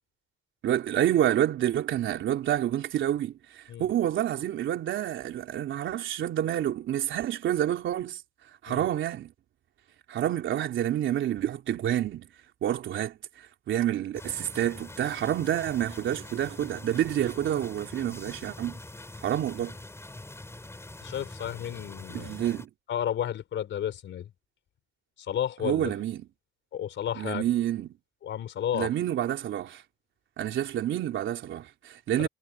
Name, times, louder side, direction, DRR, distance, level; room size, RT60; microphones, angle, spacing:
voice 1, 0.6-8.2 8.6-9.3 10.1-12.3 12.6-18.8 19.2-19.8 22.1-22.7 25.6-26.3 27.1-27.9 28.7-29.8 30.4-32.3, right 11 dB, 75° right, 3.6 m, -28 dB
sound 1, 14.1-22.7, left 2 dB, 15° left, 5.8 m, -44 dB
voice 2, 21.0-22.3 22.9-24.3 25.2-25.9 26.7-27.4 28.2-28.9 32.2-32.3, left 10 dB, 70° left, 4.7 m, -32 dB
cardioid pair, 90°, 20 cm